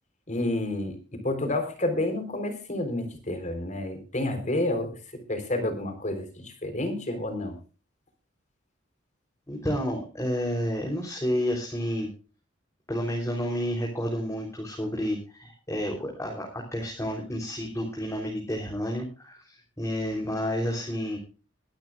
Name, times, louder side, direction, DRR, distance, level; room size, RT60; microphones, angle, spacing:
voice 1, 0.3-7.6, left 1 dB, 40° left, 7 dB, 3.8 m, -30 dB
voice 2, 9.5-12.1 12.9-21.2, equal, 15° left, 0 dB, 3.5 m, -30 dB
22.5 x 12.0 x 2.4 m, 0.35 s
head